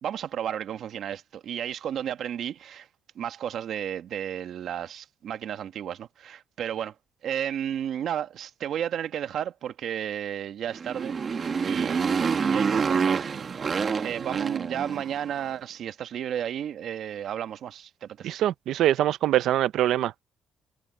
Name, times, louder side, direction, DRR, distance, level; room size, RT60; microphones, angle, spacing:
voice 1, 0.0-2.9 3.2-6.9 7.2-11.2 11.6-18.4, right 9 dB, 65° right, 1.6 m, -33 dB
Motorcycle, 10.7-15.3, right 5 dB, 35° right, 1.5 m, -27 dB
voice 2, 18.2-20.2, right 12 dB, 80° right, 0.7 m, -24 dB
cardioid pair, 135°, 0 cm